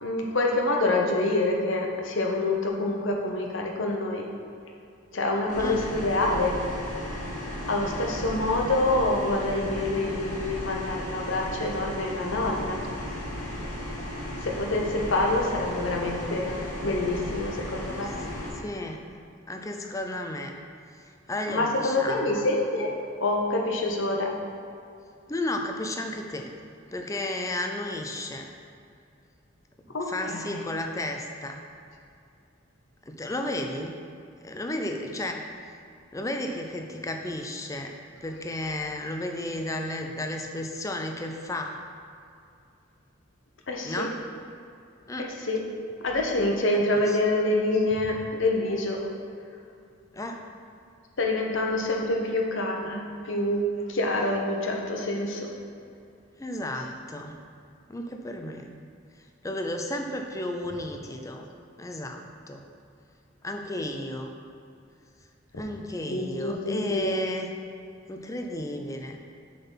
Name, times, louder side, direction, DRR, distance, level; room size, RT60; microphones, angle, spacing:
voice 1, 0.0-4.2 5.1-6.6 7.7-12.8 14.4-18.1 21.5-22.9 23.2-24.3 29.9-30.4 43.7-44.1 45.2-45.6 46.0-49.0 51.2-53.6 53.9-55.5 65.5-65.6 66.1-67.2, left 2 dB, 75° left, 1 dB, 0.9 m, -26 dB
sound 1, 5.5-18.5, left 1 dB, 40° left, 1.4 m, -35 dB
voice 2, 18.6-19.0 19.5-20.5 20.9-22.4 25.3-26.6 26.9-28.5 29.9-31.6 33.0-33.9 34.4-35.4 36.1-37.9 38.2-41.8 43.8-44.1 45.1-45.3 46.7-47.2 50.1-50.4 56.4-57.4 57.9-58.7 59.4-61.5 61.8-62.6 63.4-64.3 65.6-67.5 68.1-69.2, left 1 dB, 15° left, 3 dB, 0.4 m, -33 dB
7.0 x 3.9 x 5.7 m, 2.5 s
head